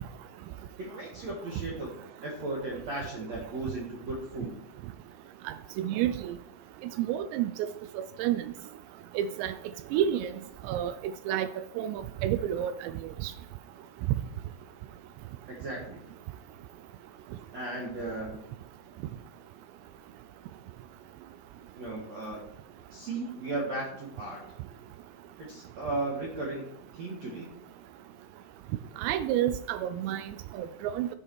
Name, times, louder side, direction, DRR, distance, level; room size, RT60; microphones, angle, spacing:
voice 1, 0.8-1.9 2.2-4.6 15.5-16.0 17.5-18.4 21.8-22.4 22.9-24.4 25.4-26.7 26.9-27.5, right 2 dB, 70° right, -2 dB, 1.6 m, -36 dB
voice 2, 5.5-6.4 7.0-7.7 8.0-8.4 9.2-9.5 9.9-10.3 10.7-10.9 11.3-11.5 11.8-12.9 13.2-13.3 29.0-30.2 30.6-30.7 30.9-31.1, right 11 dB, 90° right, 11 dB, 2.4 m, -29 dB
12.5 x 5.7 x 4.6 m, 0.74 s
omnidirectional pair, 5.5 m